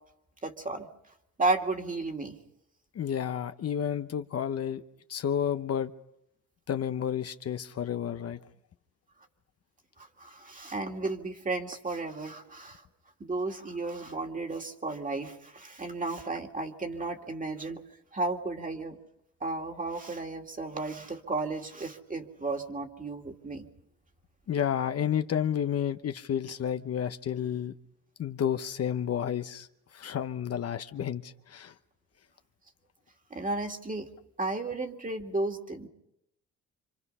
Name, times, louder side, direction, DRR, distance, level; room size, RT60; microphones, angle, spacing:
voice 1, 0.4-0.9 1.4-2.4 10.0-12.8 13.2-17.8 18.1-19.0 19.4-23.7 33.3-34.1 34.4-35.9, right 3 dB, 25° right, 2.5 m, -33 dB
voice 2, 2.9-4.8 5.1-5.9 6.7-8.4 24.5-27.7 28.2-29.7 29.9-31.7, left 9 dB, 55° left, 1.0 m, -31 dB
27.5 x 25.5 x 5.6 m
cardioid pair, 90°, 30 cm